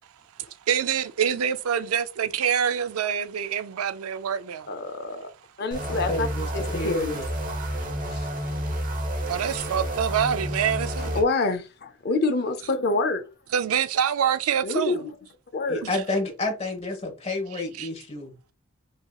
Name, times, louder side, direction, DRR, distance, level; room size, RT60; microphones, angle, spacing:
voice 1, 0.7-4.7 9.3-11.2 13.5-15.0 15.8-15.9 17.8-17.9, right 8 dB, 85° right, 0.4 m, -26 dB
voice 2, 4.7-5.3 5.6-6.3 6.5-7.2 8.1-8.3 11.1-13.2 14.6-15.0 15.5-15.8, left 3 dB, 50° left, 0.5 m, -26 dB
sound 1, 5.7-11.2, equal, 40° right, 1.0 m, -30 dB
voice 3, 5.9-7.2 15.7-18.4, left 2 dB, 30° left, 1.2 m, -30 dB
5.4 x 2.8 x 2.3 m
head